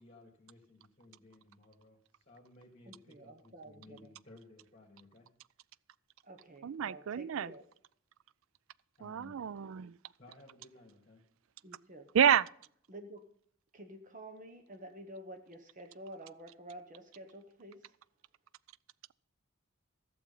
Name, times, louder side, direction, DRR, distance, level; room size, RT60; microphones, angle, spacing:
voice 1, 0.0-2.0 2.3-5.3 9.0-9.4 10.2-11.2, left 2 dB, 30° left, 2.2 m, -58 dB
voice 2, 2.8-4.1 6.2-7.6 11.6-12.1 12.9-13.2 13.7-17.9, right 1 dB, 35° right, 1.0 m, -50 dB
voice 3, 6.6-7.5 9.0-10.0 12.1-12.5, right 8 dB, 65° right, 0.4 m, -29 dB
15.0 x 7.0 x 5.4 m
head